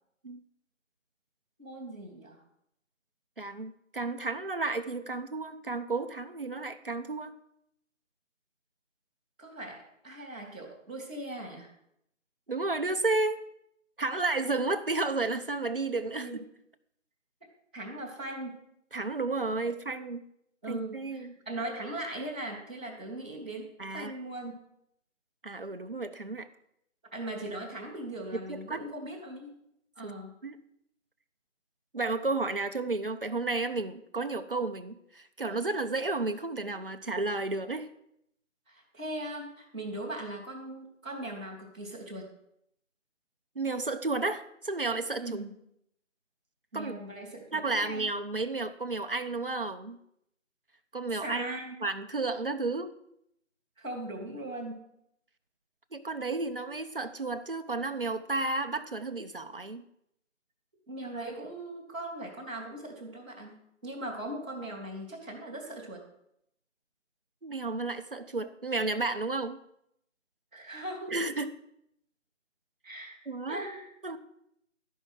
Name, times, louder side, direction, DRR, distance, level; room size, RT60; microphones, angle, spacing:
voice 1, 1.6-2.4 9.4-11.7 16.1-16.4 17.7-18.6 20.6-24.6 27.1-29.5 29.9-30.3 38.7-42.3 45.2-45.5 46.7-48.1 51.2-51.8 53.8-54.9 60.9-66.0 70.5-71.3 72.8-73.9, right 1 dB, 10° right, -11 dB, 1.6 m, -39 dB
voice 2, 3.4-7.3 12.5-13.4 14.0-16.3 18.9-20.2 20.7-21.3 23.8-24.1 25.4-26.5 28.5-28.8 30.0-30.1 30.4-30.6 31.9-37.9 43.6-45.4 46.7-46.9 47.5-50.0 50.9-51.5 51.8-52.9 55.9-59.8 67.4-69.6 71.1-71.5 73.3-73.6 74.0-74.2, right 3 dB, 45° right, 8 dB, 0.7 m, -32 dB
12.5 x 5.4 x 6.5 m, 0.76 s
figure-of-eight pair, 175°, 39 cm